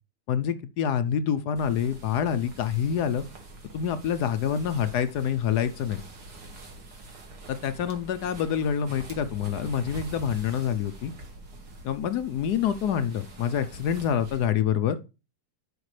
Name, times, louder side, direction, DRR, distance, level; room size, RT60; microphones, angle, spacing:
voice 1, 0.3-3.2 3.7-6.0 7.5-11.1 11.8-15.0, left 8 dB, 70° left, 11 dB, 1.0 m, -27 dB
sound 1, 1.6-14.5, right 1 dB, 55° right, 2.1 m, -45 dB
11.5 x 5.2 x 3.2 m, 0.29 s
omnidirectional pair, 2.2 m